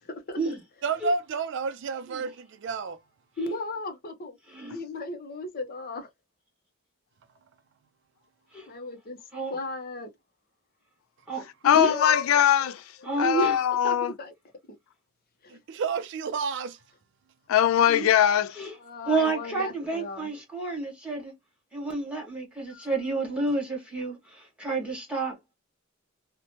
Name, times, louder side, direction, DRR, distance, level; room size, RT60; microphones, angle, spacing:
voice 1, 0.8-3.0 15.5-16.8, right 4 dB, 60° right, 0.4 m, -30 dB
voice 2, 3.4-4.4 4.7-6.1 8.7-9.2 9.5-10.1 11.6-12.4 13.1-13.5 13.8-14.3 15.4-15.6 18.8-20.3, left 3 dB, 45° left, 0.7 m, -34 dB
voice 3, 4.5-4.8 8.5-8.7 9.3-9.6 11.3-11.4 11.7-12.0 13.0-13.6 17.9-18.1 18.6-18.7 19.0-21.3 21.7-25.3, right 3 dB, 5° right, 1.4 m, -30 dB
voice 4, 11.6-12.8 13.2-14.1 17.5-18.5, left 10 dB, 90° left, 0.3 m, -21 dB
2.8 x 2.1 x 2.7 m
head